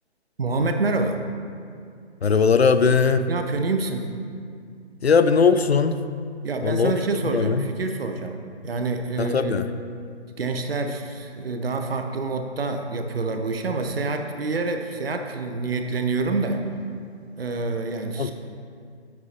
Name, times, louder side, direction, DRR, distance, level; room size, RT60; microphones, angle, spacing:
voice 1, 0.4-1.2 3.3-4.1 6.4-8.4 8.6-9.6 10.4-16.7 17.4-18.3, right 3 dB, 60° right, 6 dB, 0.7 m, -27 dB
voice 2, 2.2-3.3 5.0-6.0 6.6-6.9 7.3-7.7 9.2-9.7 18.2-18.3, left 5 dB, 65° left, 10 dB, 0.5 m, -19 dB
8.3 x 8.3 x 2.9 m, 2.3 s
figure-of-eight pair, 145°, 34 cm